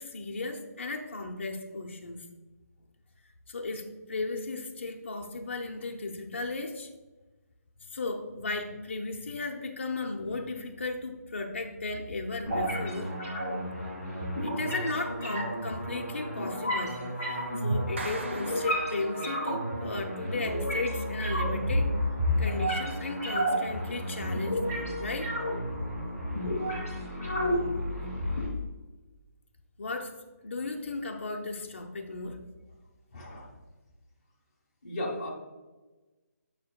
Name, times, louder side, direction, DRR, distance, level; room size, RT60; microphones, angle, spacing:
voice 1, 0.0-2.3 3.5-6.9 7.9-13.1 14.4-17.0 17.6-21.9 22.4-25.3 29.8-30.1 30.4-32.4, left 3 dB, 45° left, 2 dB, 0.6 m, -35 dB
sound 1, 12.5-28.5, equal, 10° right, 1.1 m, -31 dB
Clapping, 18.0-19.6, right 3 dB, 45° right, 0.7 m, -41 dB
voice 2, 33.1-33.5 34.8-35.3, left 1 dB, 25° left, -3 dB, 1.1 m, -35 dB
6.5 x 6.3 x 2.3 m, 1.2 s
hypercardioid pair, 180°, 9 cm